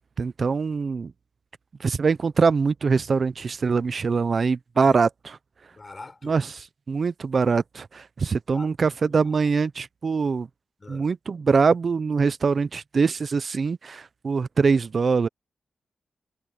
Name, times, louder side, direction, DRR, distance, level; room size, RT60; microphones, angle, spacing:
voice 1, 0.2-1.1 1.8-5.1 6.2-6.4 6.9-10.5 10.9-15.3, right 5 dB, 60° right, 0.7 m, -23 dB
voice 2, 5.7-6.4 8.5-9.3 10.8-11.1, left 3 dB, 40° left, 4.2 m, -44 dB
cardioid pair, 50°, 0 cm